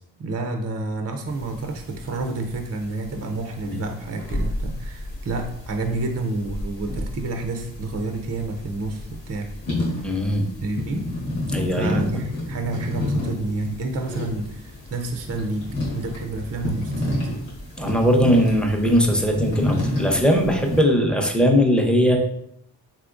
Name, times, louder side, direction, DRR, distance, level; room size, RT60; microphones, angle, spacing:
voice 1, 0.2-9.5 9.9-10.1 10.6-11.1 11.7-17.3, right 2 dB, 35° right, 4 dB, 0.5 m, -29 dB
sound 1, 1.3-20.8, left 1 dB, 85° left, 1.3 m, -31 dB
voice 2, 10.0-10.5 11.5-12.0 17.8-22.2, equal, ahead, 2 dB, 0.7 m, -19 dB
3.6 x 2.8 x 2.5 m, 0.73 s
supercardioid pair, 45°, 44 cm